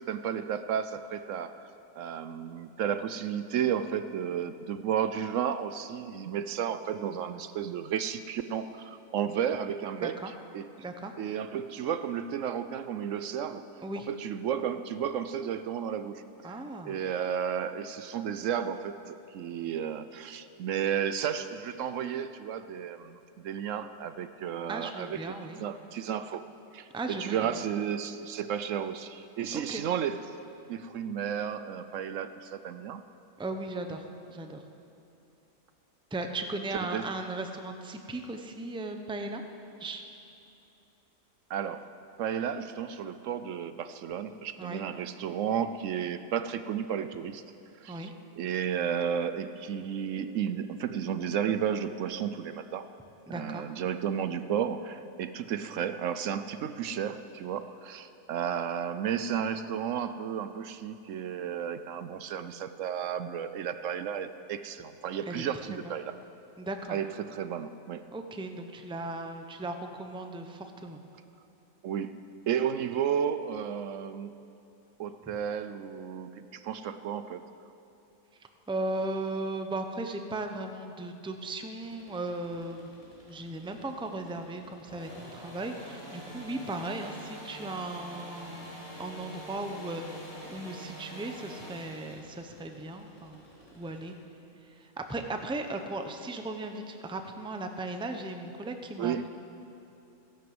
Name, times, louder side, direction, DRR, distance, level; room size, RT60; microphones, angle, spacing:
voice 1, 0.1-1.7 2.0-10.7 11.2-13.6 14.1-16.6 16.8-26.4 26.7-30.4 30.7-33.0 36.9-37.1 41.5-41.9 42.2-47.4 47.8-48.1 48.4-52.9 53.3-66.1 66.9-68.1 71.8-74.4 75.0-77.4 99.0-99.3, right 8 dB, 70° right, 11 dB, 0.9 m, -33 dB
voice 2, 9.9-10.3 10.8-11.1 13.8-14.1 16.4-17.0 24.7-25.6 26.9-27.5 29.5-29.8 33.4-34.6 36.1-39.4 39.8-40.0 44.6-44.8 47.9-48.1 53.3-53.6 65.3-65.4 65.7-65.8 66.6-67.0 68.1-71.0 78.7-82.9 83.3-93.4 93.7-94.1 94.8-99.3, right 2 dB, 5° right, 6 dB, 0.6 m, -37 dB
sound 1, 81.8-94.1, equal, 35° left, 3.4 m, -47 dB
15.5 x 11.5 x 7.8 m, 2.8 s
omnidirectional pair, 1.4 m